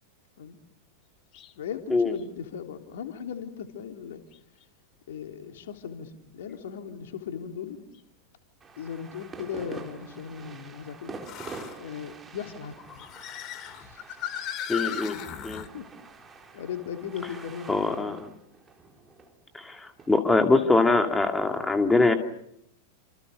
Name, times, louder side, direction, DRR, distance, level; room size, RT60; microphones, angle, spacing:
sound 1, 1.3-1.5 2.2-2.3 4.3-4.4 7.9-8.0 11.2-11.8 12.7-15.7, left 9 dB, 35° left, 2.4 m, -36 dB
voice 1, 1.6-4.2 5.1-7.8 8.8-11.2 11.8-13.1 13.7-14.0 15.7-15.9 16.5-18.3, left 8 dB, 60° left, 5 dB, 3.6 m, -38 dB
sound 2, 8.6-20.1, right 4 dB, 20° right, 4.2 m, -46 dB
voice 2, 14.7-15.2 15.4-15.7 17.7-18.3 19.5-22.1, left 3 dB, 10° left, 6 dB, 2.5 m, -23 dB
30.0 x 27.5 x 6.8 m, 0.76 s
figure-of-eight pair, 90°, 0 cm